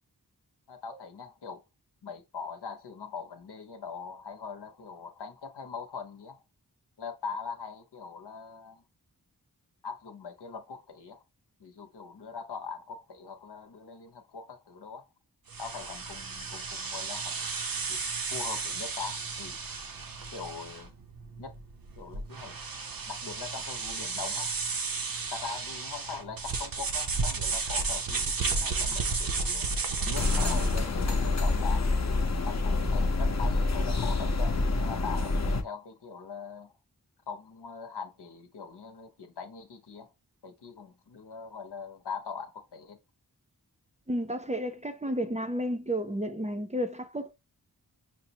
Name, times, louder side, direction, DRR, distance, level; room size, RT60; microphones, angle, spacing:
voice 1, 0.7-1.6 2.0-6.4 7.0-8.8 9.8-11.2 11.6-15.0 15.6-17.5 17.9-18.0 18.3-19.6 20.3-20.9 21.4-21.5 22.0-22.5 23.1-24.6 25.3-29.7 30.0-31.9 32.5-36.7 37.3-40.1 40.4-43.0, left 5 dB, 85° left, 0.8 m, -41 dB
sound 1, 15.5-30.9, right 4 dB, 60° right, 0.7 m, -33 dB
sound 2, 30.1-35.6, left 3 dB, 45° left, 0.6 m, -27 dB
voice 2, 44.1-47.3, equal, 20° right, 0.5 m, -32 dB
5.8 x 2.0 x 2.8 m
wide cardioid pair, 45°, 39 cm